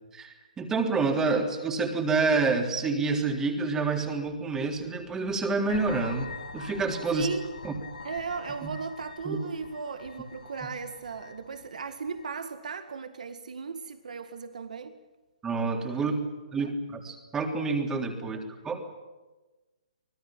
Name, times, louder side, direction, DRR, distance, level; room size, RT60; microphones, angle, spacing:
voice 1, 0.1-7.3 7.6-7.7 8.6-8.7 9.3-9.4 15.4-16.1 16.5-18.4 18.6-18.8, right 4 dB, 10° right, 3 dB, 3.4 m, -28 dB
sound 1, 5.7-12.4, left 4 dB, 75° left, 2.5 m, -44 dB
voice 2, 7.1-7.5 8.0-15.0 15.9-16.2 16.6-16.7 18.2-18.4, right 5 dB, 70° right, 9 dB, 2.0 m, -37 dB
25.5 x 18.5 x 8.9 m, 1.2 s
hypercardioid pair, 140°, 4 cm